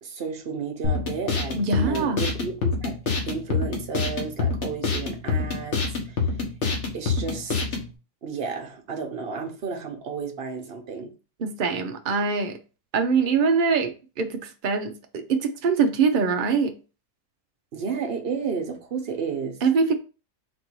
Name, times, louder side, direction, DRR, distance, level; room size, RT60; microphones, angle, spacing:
voice 1, 0.0-3.0 3.3-5.8 6.1-6.2 6.9-7.6 8.2-11.1 17.7-19.6, right 5 dB, 45° right, 0.9 m, -32 dB
sound 1, 0.8-7.9, left 4 dB, 50° left, 1.3 m, -26 dB
voice 2, 1.6-2.2 11.4-12.6 12.9-16.8 19.6-19.9, right 5 dB, 75° right, 0.4 m, -23 dB
4.4 x 2.6 x 4.5 m
omnidirectional pair, 1.6 m